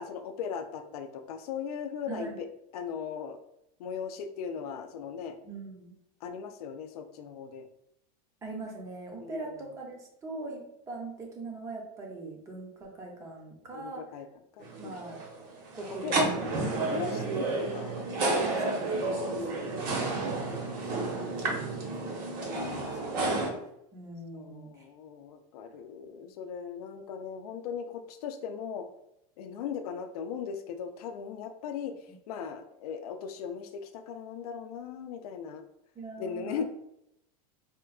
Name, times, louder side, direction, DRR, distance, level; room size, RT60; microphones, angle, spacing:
voice 1, 0.0-2.5 2.7-3.4 3.8-5.4 6.2-7.7 9.2-9.5 13.7-14.3 14.6-15.0 16.0-16.2 16.9-17.9 18.2-18.4 19.2-19.7 20.5-20.7 22.5-22.9 24.3-28.9 29.4-32.0 32.3-35.6 36.2-36.6, left 7 dB, 85° left, 8 dB, 0.5 m, -38 dB
voice 2, 2.1-2.4 5.4-5.9 8.4-14.1 14.8-15.2 15.7-16.4 16.7-17.0 18.4-22.4 22.7-22.8 23.3-23.5 23.9-24.8 26.2-26.3 36.0-36.6, right 3 dB, 15° right, 1 dB, 0.6 m, -42 dB
sound 1, 14.6-23.5, right 2 dB, 45° right, 0.9 m, -31 dB
4.4 x 2.2 x 2.3 m, 0.80 s
supercardioid pair, 160°, 19 cm